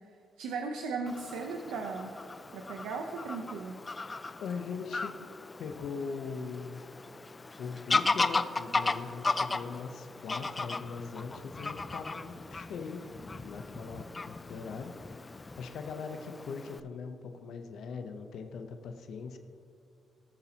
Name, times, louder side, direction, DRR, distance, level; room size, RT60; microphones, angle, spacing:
voice 1, 0.4-2.2 2.5-3.8, right 4 dB, 90° right, 3 dB, 0.7 m, -37 dB
Fowl / Bird vocalization bird call bird song, 1.1-16.8, left 3 dB, 25° left, 0.4 m, -36 dB
voice 2, 4.4-5.1 5.6-6.8 7.6-13.0 13.4-14.9 15.2-19.4, left 5 dB, 70° left, 6 dB, 0.8 m, -40 dB
19.0 x 7.0 x 2.9 m, 2.5 s
cardioid pair, 90°, 0 cm